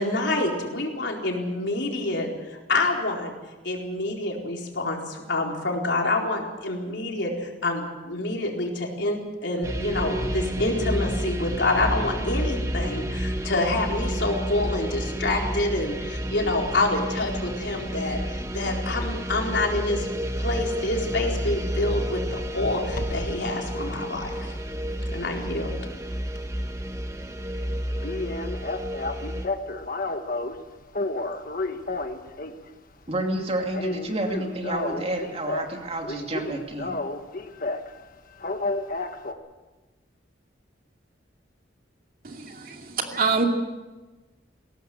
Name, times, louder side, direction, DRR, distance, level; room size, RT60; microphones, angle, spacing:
voice 1, 0.0-3.3 3.6-20.1 20.4-24.6 25.1-25.8, left 2 dB, 65° left, 0 dB, 4.2 m, -27 dB
sound 1, 9.6-29.5, equal, 15° right, 1.2 m, -30 dB
sound 2, 20.6-20.8 22.9-23.4 23.8-25.9 26.2-26.4 26.7-26.8 27.1-27.2 27.5-27.6 28.0-30.6 30.9-32.7 33.0-33.3 33.6-35.8 36.0-37.9 38.4-39.3, left 2 dB, 50° left, 1.4 m, -31 dB
voice 2, 33.1-37.0, right 1 dB, 35° right, 3 dB, 2.6 m, -29 dB
voice 3, 42.2-43.4, right 4 dB, 50° right, 3 dB, 2.5 m, -26 dB
21.0 x 17.5 x 7.9 m, 1.2 s
head